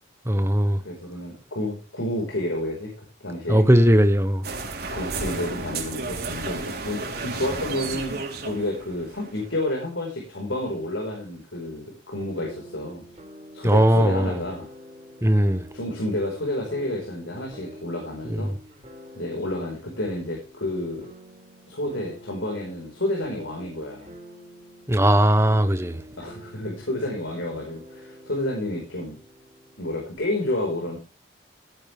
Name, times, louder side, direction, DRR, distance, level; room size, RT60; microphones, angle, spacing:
voice 1, 0.3-0.8 3.5-4.5 13.6-14.4 15.2-15.7 18.3-18.5 24.9-26.0, equal, 15° right, 1.1 m, -19 dB
voice 2, 0.8-2.9 3.2-3.7 4.9-13.0 13.5-14.7 15.7-18.5 19.2-21.0 21.7-24.1 26.2-29.1 29.8-31.0, left 1 dB, 80° left, 5.3 m, -30 dB
sound 1, 4.4-9.5, right 3 dB, 50° right, 4.0 m, -32 dB
sound 2, 12.4-30.2, equal, 30° right, 5.6 m, -47 dB
17.5 x 11.5 x 3.6 m
head